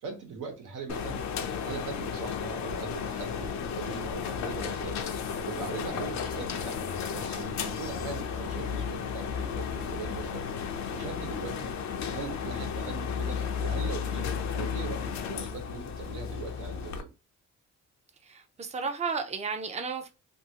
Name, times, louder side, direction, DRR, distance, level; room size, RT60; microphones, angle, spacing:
voice 1, 0.0-1.2 1.6-5.0 5.4-10.5 10.9-11.7 12.1-17.1, right 5 dB, 80° right, 1.2 m, -40 dB
sound 1, 0.9-17.0, left 7 dB, 65° left, 0.6 m, -33 dB
voice 2, 18.3-20.1, right 5 dB, 20° right, 0.6 m, -33 dB
2.7 x 2.6 x 2.8 m
cardioid pair, 90°, 30 cm